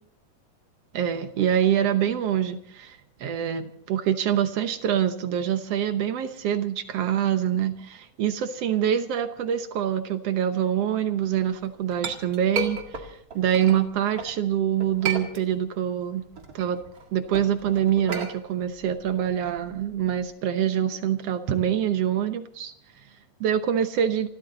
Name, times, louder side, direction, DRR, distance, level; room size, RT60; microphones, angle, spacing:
voice 1, 0.9-12.8 13.1-16.2 16.5-16.8 17.1-22.7 23.4-24.3, right 9 dB, 65° right, 9 dB, 1.6 m, -25 dB
Chink clink, 11.5-14.4 14.8-15.8 16.2-20.3, right 4 dB, 35° right, 2.0 m, -34 dB
28.5 x 13.0 x 4.0 m, 0.67 s
omnidirectional pair, 3.8 m